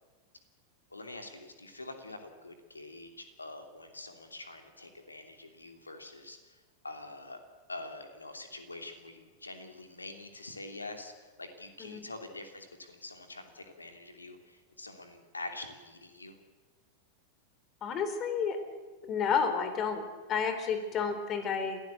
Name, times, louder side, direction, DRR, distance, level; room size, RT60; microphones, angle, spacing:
voice 1, 0.9-6.6 6.8-7.4 7.7-11.1 11.4-16.4 20.7-20.8, left 2 dB, 80° left, 6 dB, 2.9 m, -45 dB
voice 2, 17.8-18.6 19.0-21.8, left 6 dB, 30° left, 9 dB, 3.9 m, -31 dB
27.5 x 16.5 x 8.1 m, 1.3 s
figure-of-eight pair, 90°, 0 cm